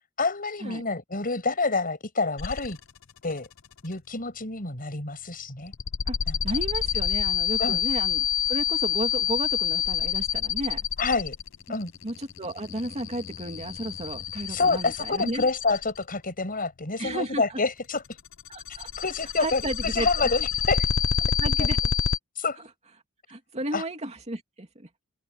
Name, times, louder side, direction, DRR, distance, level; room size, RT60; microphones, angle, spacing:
voice 1, 0.2-2.8 3.2-3.5 3.8-5.7 6.3-6.4 7.6-7.8 11.0-11.3 11.7-11.9 14.5-18.0 19.0-20.9 21.6-21.7 22.4-22.6 23.7-23.8, left 3 dB, 45° left, 7.8 m, -27 dB
sound 1, 2.4-3.0 3.3-3.8 5.7-16.1 18.1-22.2, left 8 dB, 65° left, 0.7 m, -28 dB
voice 2, 6.4-10.8 12.0-15.5 17.0-17.6 18.5-18.9 19.4-20.3 21.4-21.8 22.6-22.7 23.3-24.9, right 1 dB, 30° right, 2.8 m, -33 dB
open air
head